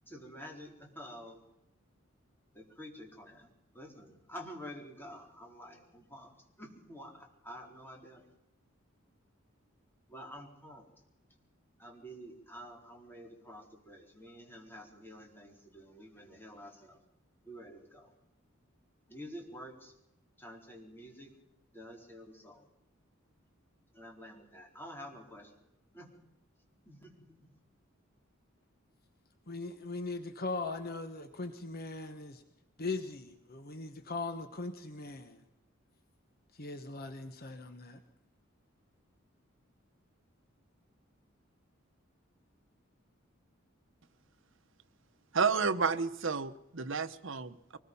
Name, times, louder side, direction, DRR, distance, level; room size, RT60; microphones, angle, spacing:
voice 1, 0.1-1.4 2.5-3.5 3.7-8.3 10.1-10.9 11.8-17.0 17.4-18.1 19.1-19.9 20.4-21.3 21.7-22.6 23.9-25.6 25.9-26.1 26.8-27.5, equal, 10° left, 0 dB, 4.4 m, -49 dB
voice 2, 29.5-32.4 32.8-35.4 36.5-38.0, left 3 dB, 50° left, 8 dB, 1.3 m, -39 dB
voice 3, 45.3-47.8, right 5 dB, 65° right, 11 dB, 1.1 m, -31 dB
24.0 x 20.5 x 5.6 m, 0.88 s
head